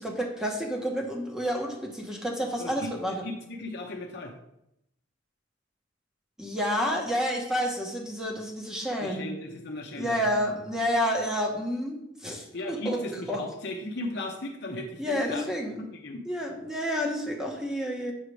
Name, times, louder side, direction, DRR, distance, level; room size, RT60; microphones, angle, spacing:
voice 1, 0.0-3.2 6.4-9.3 10.0-13.0 13.3-13.4 15.0-15.7 16.3-18.1, equal, 5° right, 0 dB, 1.2 m, -29 dB
voice 2, 2.6-4.3 9.0-10.3 12.5-15.5 15.8-16.2, left 2 dB, 60° left, 1 dB, 0.8 m, -36 dB
7.8 x 6.5 x 3.3 m, 0.82 s
head